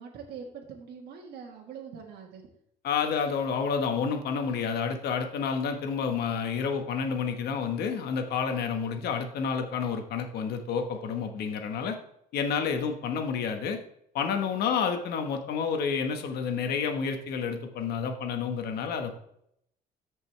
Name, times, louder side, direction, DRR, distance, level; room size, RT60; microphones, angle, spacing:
voice 1, 0.0-2.4, right 6 dB, 75° right, 0 dB, 1.7 m, -43 dB
voice 2, 2.8-12.0 12.3-13.8 14.1-19.1, left 6 dB, 70° left, 6 dB, 1.4 m, -29 dB
13.5 x 5.4 x 3.4 m, 0.72 s
cardioid pair, 110°, 17 cm